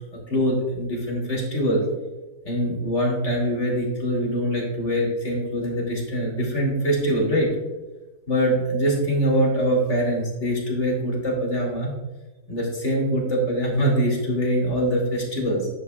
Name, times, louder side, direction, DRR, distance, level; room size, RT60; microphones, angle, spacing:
voice 1, 0.1-1.8 2.4-7.5 8.3-11.9 12.5-15.7, equal, 40° left, -2 dB, 3.1 m, -23 dB
11.5 x 8.7 x 2.4 m, 1.1 s
omnidirectional pair, 1.8 m